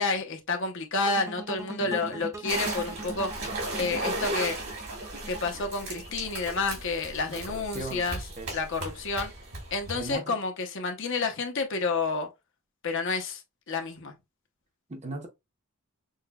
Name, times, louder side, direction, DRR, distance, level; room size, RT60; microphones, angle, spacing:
voice 1, 0.0-3.3 3.8-4.6 5.3-8.2 8.5-9.3 9.7-12.3 12.8-13.4 13.7-14.1, left 3 dB, 60° left, 0.8 m, -30 dB
sound 1, 1.0-6.1, right 2 dB, 15° right, 0.4 m, -40 dB
voice 2, 1.8-2.3 3.4-3.6 7.3-8.6 9.9-10.4 14.9-15.3, right 2 dB, 30° right, 0.7 m, -39 dB
sound 2, 2.5-10.1, right 2 dB, 75° right, 2.4 m, -36 dB
6.3 x 2.2 x 2.3 m
head